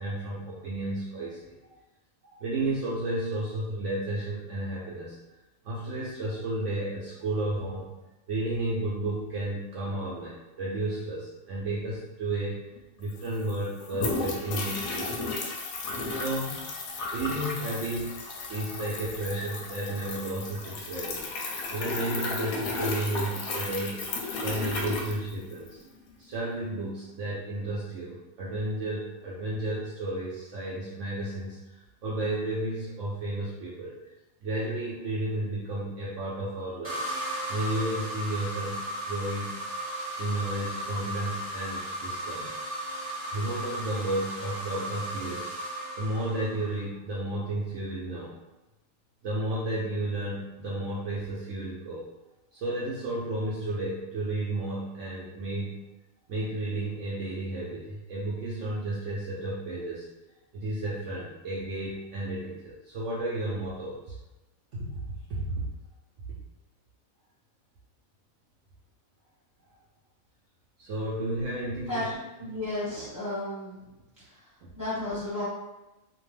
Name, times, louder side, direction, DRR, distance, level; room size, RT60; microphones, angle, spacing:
voice 1, 0.0-1.6 2.2-5.2 5.6-7.9 8.3-12.6 13.0-15.3 16.1-16.7 17.1-18.2 18.5-21.3 21.7-24.0 24.4-25.8 26.2-31.7 32.0-34.1 34.4-37.0 37.5-39.6 40.2-42.5 43.3-45.7 46.0-48.3 49.2-52.1 52.5-55.8 56.3-60.1 60.5-64.2 64.7-65.6 70.8-72.1 72.4-72.6 74.6-74.7, right 1 dB, 70° right, -6 dB, 0.9 m, -32 dB
sound 1, 12.8-12.9 13.0-25.8, left 3 dB, 90° left, 1.1 m, -34 dB
sound 2, 36.8-46.8, right 1 dB, 10° right, 1.1 m, -35 dB
voice 2, 72.4-73.9 74.2-75.4, left 1 dB, 15° left, -11 dB, 0.7 m, -34 dB
2.9 x 2.1 x 3.1 m, 1.0 s
omnidirectional pair, 1.4 m